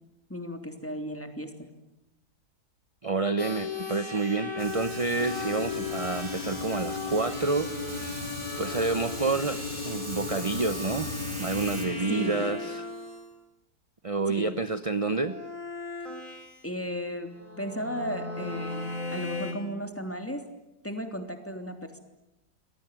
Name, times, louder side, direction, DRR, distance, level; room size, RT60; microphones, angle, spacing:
voice 1, 0.3-1.7 12.1-12.4 14.3-14.5 16.6-20.4 20.8-22.0, equal, 5° left, 6 dB, 3.3 m, -35 dB
voice 2, 3.0-8.2 8.6-12.9 14.0-15.4, right 3 dB, 25° right, 12 dB, 0.7 m, -29 dB
sound 1, 3.4-13.3 15.1-16.6 17.3-19.5, left 3 dB, 45° left, 7.3 m, -38 dB
Fire, 4.6-11.8, right 1 dB, 50° right, 5.4 m, -40 dB
sound 2, 5.2-12.5, left 6 dB, 90° left, 2.7 m, -38 dB
28.0 x 22.5 x 9.1 m, 0.95 s
omnidirectional pair, 1.9 m